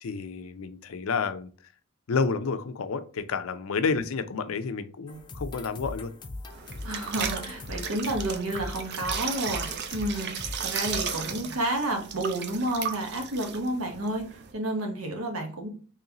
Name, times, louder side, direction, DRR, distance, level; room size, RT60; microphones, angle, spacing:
voice 1, 0.0-1.5 2.1-6.1, left 5 dB, 75° left, 0.5 m, -30 dB
sound 1, 5.1-11.4, left 2 dB, 20° left, 0.6 m, -40 dB
sound 2, 6.5-14.5, right 7 dB, 55° right, 0.5 m, -35 dB
voice 2, 6.8-14.3 14.5-15.7, right 1 dB, 85° right, 1.1 m, -30 dB
3.9 x 3.1 x 2.9 m
head